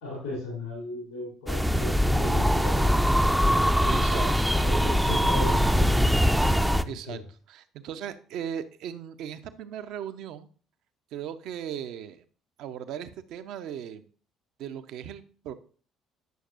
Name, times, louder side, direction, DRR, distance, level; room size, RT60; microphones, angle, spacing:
voice 1, 0.0-3.0 4.1-6.3 6.8-7.2, left 2 dB, 80° left, -4 dB, 3.0 m, -37 dB
sound 1, 1.5-6.8, equal, 5° right, 0.5 m, -22 dB
voice 2, 3.5-4.4 6.8-7.2 7.5-10.5 11.1-12.2 12.6-14.1 14.6-15.5, right 9 dB, 60° right, 10 dB, 0.6 m, -37 dB
9.3 x 6.4 x 2.4 m, 0.41 s
figure-of-eight pair, 50°, 0 cm